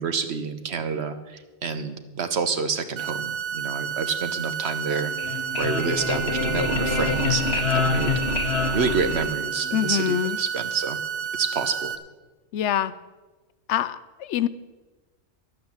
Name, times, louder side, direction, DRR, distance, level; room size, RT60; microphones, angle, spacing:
voice 1, 0.0-8.2 8.7-11.0 11.3-11.9, right 5 dB, 70° right, 8 dB, 1.2 m, -28 dB
sound 1, 3.0-12.0, right 7 dB, 85° right, 1.1 m, -31 dB
sound 2, 5.0-9.7, left 3 dB, 65° left, 1.6 m, -26 dB
voice 2, 9.7-10.4 12.5-12.9 13.7-14.5, left 10 dB, 80° left, 16 dB, 0.9 m, -25 dB
12.0 x 8.8 x 7.1 m, 1.2 s
omnidirectional pair, 1.2 m